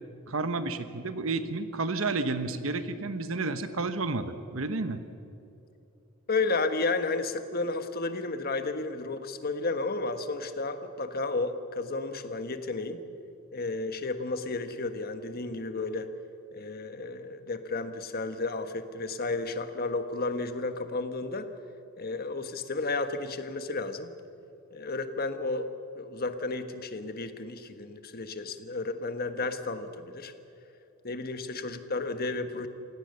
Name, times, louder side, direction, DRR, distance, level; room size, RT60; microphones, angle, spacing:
voice 1, 0.3-5.0, right 3 dB, 75° right, 10 dB, 1.1 m, -31 dB
voice 2, 6.3-13.0 13.5-16.1 16.5-21.5 22.0-24.1 24.7-25.7 25.9-30.3 31.0-32.7, left 3 dB, 50° left, 9 dB, 1.4 m, -32 dB
27.5 x 17.5 x 6.8 m, 2.8 s
head